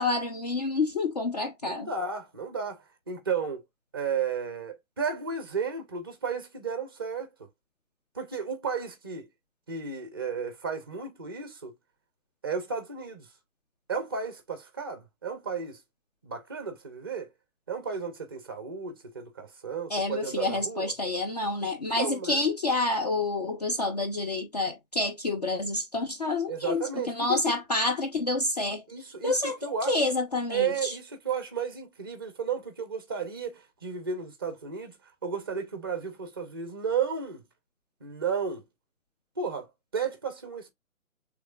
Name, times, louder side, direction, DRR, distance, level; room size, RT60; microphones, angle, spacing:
voice 1, 0.0-1.9 19.9-28.8 29.2-30.9, left 2 dB, 30° left, 0.6 m, -28 dB
voice 2, 1.6-3.6 3.9-7.5 8.1-9.3 9.7-11.7 12.4-13.3 13.9-15.8 16.2-17.3 17.7-20.9 22.0-22.4 26.5-27.6 28.9-30.1 30.5-37.5 38.0-38.7 39.4-40.7, right 6 dB, 15° right, 0.5 m, -33 dB
6.2 x 3.2 x 2.3 m
hypercardioid pair, 150°, 42 cm